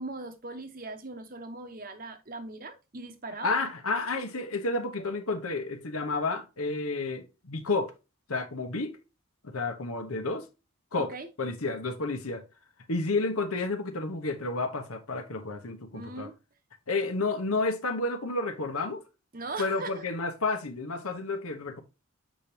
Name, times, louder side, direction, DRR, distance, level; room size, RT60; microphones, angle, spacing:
voice 1, 0.0-3.5 11.0-11.3 15.9-16.3 19.3-20.0, right 3 dB, 40° right, 0.9 m, -39 dB
voice 2, 3.4-7.9 8.3-9.0 9.4-10.5 10.9-11.1 11.4-12.4 12.9-16.3 16.9-19.0 19.6-21.8, left 3 dB, 85° left, 1.2 m, -31 dB
7.6 x 5.1 x 2.8 m
head